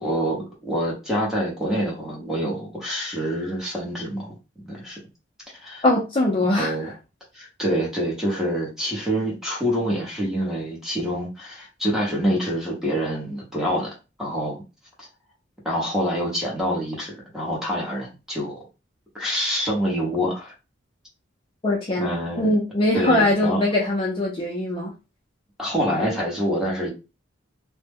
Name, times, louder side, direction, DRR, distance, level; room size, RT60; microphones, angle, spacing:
voice 1, 0.0-4.3 4.6-5.0 5.6-5.8 6.4-6.9 7.3-13.9 14.2-14.6 15.0-15.1 15.6-18.6 19.1-20.5 22.0-22.5 22.9-23.6 25.6-26.9, equal, ahead, -3 dB, 0.8 m, -26 dB
voice 2, 5.8-6.7 21.6-24.9, left 1 dB, 25° left, -2 dB, 0.4 m, -22 dB
2.1 x 2.0 x 3.4 m, 0.29 s
head